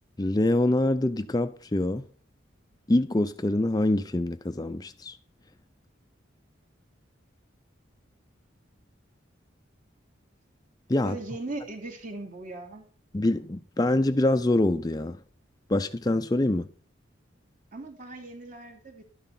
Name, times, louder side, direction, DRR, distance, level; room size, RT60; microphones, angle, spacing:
voice 1, 0.2-2.0 2.9-5.2 10.9-11.2 13.1-15.2 15.7-16.7, left 1 dB, 20° left, 0.5 m, -25 dB
voice 2, 11.0-12.8 17.7-19.0, right 2 dB, 40° right, 2.9 m, -39 dB
12.5 x 10.5 x 4.3 m
head